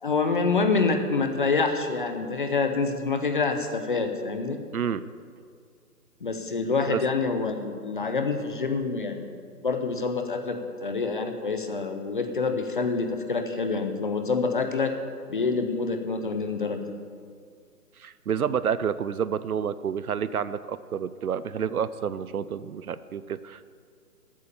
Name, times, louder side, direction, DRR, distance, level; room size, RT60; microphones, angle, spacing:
voice 1, 0.0-4.6 6.2-9.3 9.6-14.9 15.3-16.8, left 4 dB, 30° left, 7 dB, 0.8 m, -27 dB
voice 2, 4.7-5.1 6.9-7.0 18.0-23.6, right 7 dB, 65° right, 16 dB, 0.6 m, -29 dB
12.5 x 8.6 x 6.8 m, 2.1 s
figure-of-eight pair, 155°, 48 cm